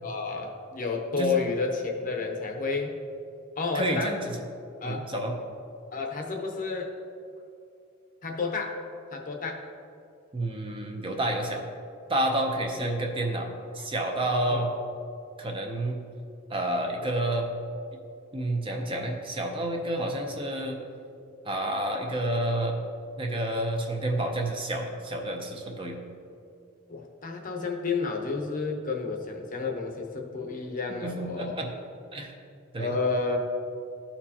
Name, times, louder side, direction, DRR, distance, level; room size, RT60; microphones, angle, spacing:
voice 1, 0.0-3.0 3.6-4.2 4.8-5.1 5.9-7.0 8.2-8.8 9.1-9.6 12.7-13.0 14.5-14.6 17.0-17.1 26.9-31.7 32.8-33.4, left 4 dB, 40° left, 2 dB, 0.7 m, -31 dB
voice 2, 3.7-4.3 4.8-5.3 10.3-11.6 12.1-13.5 13.7-14.7 15.4-16.0 16.5-17.5 18.3-20.8 21.4-22.8 23.2-26.0 31.0-31.7 32.1-32.3 32.7-32.9, right 1 dB, 25° right, 2 dB, 0.6 m, -29 dB
12.5 x 4.4 x 2.8 m, 2.5 s
head